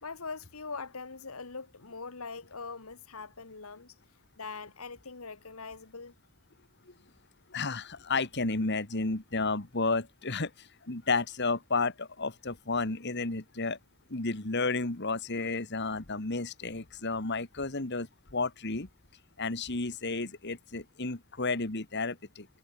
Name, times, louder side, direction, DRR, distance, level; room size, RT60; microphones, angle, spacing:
voice 1, 0.0-3.9 4.4-6.1, left 4 dB, 75° left, 1.7 m, -42 dB
voice 2, 7.5-13.8 14.1-18.9 19.4-22.5, left 3 dB, 50° left, 2.0 m, -32 dB
head